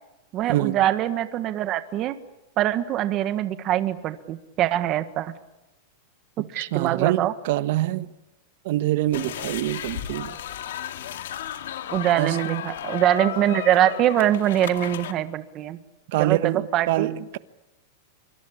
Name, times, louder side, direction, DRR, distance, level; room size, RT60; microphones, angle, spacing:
voice 1, 0.3-2.2 2.6-5.3 6.5-7.3 11.9-15.8 16.2-17.1, right 12 dB, 35° right, 1.6 m, -23 dB
voice 2, 6.4-8.1 8.6-10.4 12.1-12.6 16.1-17.4, right 15 dB, 60° right, 1.3 m, -25 dB
sound 1, 9.1-15.1, left 10 dB, 80° left, 2.2 m, -34 dB
25.0 x 24.5 x 8.7 m
supercardioid pair, 145°, 0 cm